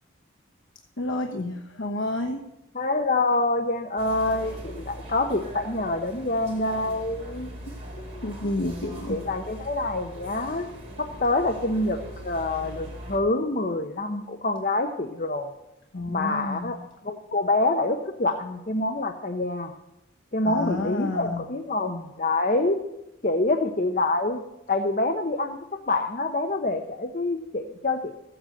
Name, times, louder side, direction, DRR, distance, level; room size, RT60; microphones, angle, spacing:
voice 1, 1.0-2.4 7.7-7.8 8.2-9.2 15.9-16.8 20.4-21.4, left 2 dB, 75° left, 3 dB, 1.1 m, -30 dB
voice 2, 2.7-7.5 8.0-8.2 9.1-10.7 11.0-15.5 16.1-16.8 17.0-19.7 20.3-22.8 23.2-24.4 24.7-25.6 25.9-28.1, left 2 dB, 40° left, 6 dB, 0.9 m, -26 dB
sound 1, 4.0-13.2, equal, 30° right, 3.8 m, -41 dB
14.5 x 7.9 x 7.8 m, 0.91 s
head